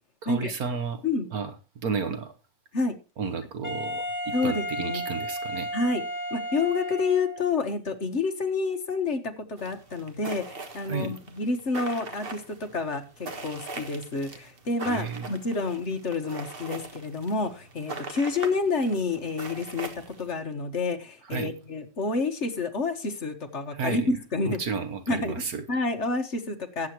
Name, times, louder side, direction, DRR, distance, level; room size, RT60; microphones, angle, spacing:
voice 1, 0.2-1.0 1.3-2.3 3.2-5.7 10.9-11.2 14.9-15.3 21.3-21.5 23.7-24.1 24.4-25.6, right 5 dB, 65° right, 9 dB, 1.5 m, -32 dB
Wind instrument woodwind instrument, 3.6-7.6, equal, 10° left, 1.2 m, -33 dB
voice 2, 4.3-5.0 5.7-6.0 6.3-19.9 20.2-24.6 25.1-25.3 25.7-26.9, left 3 dB, 45° left, 6 dB, 1.6 m, -29 dB
sound 1, 9.6-20.3, right 2 dB, 35° right, 1.5 m, -41 dB
18.5 x 8.2 x 3.0 m, 0.32 s
omnidirectional pair, 1.7 m